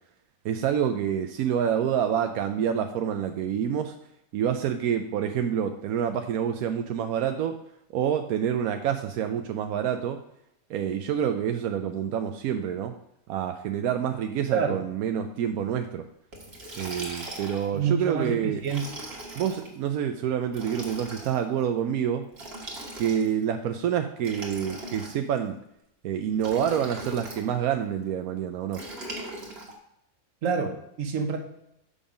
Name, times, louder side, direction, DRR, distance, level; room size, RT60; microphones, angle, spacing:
voice 1, 0.4-3.9 4.3-7.6 7.9-10.2 10.7-13.0 13.3-16.0 16.8-18.6 19.4-22.3 23.0-25.6 26.0-28.8, right 9 dB, 85° right, 6 dB, 1.1 m, -27 dB
Liquid, 16.3-17.8 18.6-19.7 20.5-21.4 22.3-23.4 24.2-25.4 26.4-27.5 28.7-29.7, right 1 dB, 45° right, 1.8 m, -39 dB
voice 2, 17.7-18.8 30.4-31.4, right 6 dB, 65° right, 5 dB, 1.4 m, -27 dB
7.0 x 5.5 x 5.0 m, 0.79 s
omnidirectional pair, 1.5 m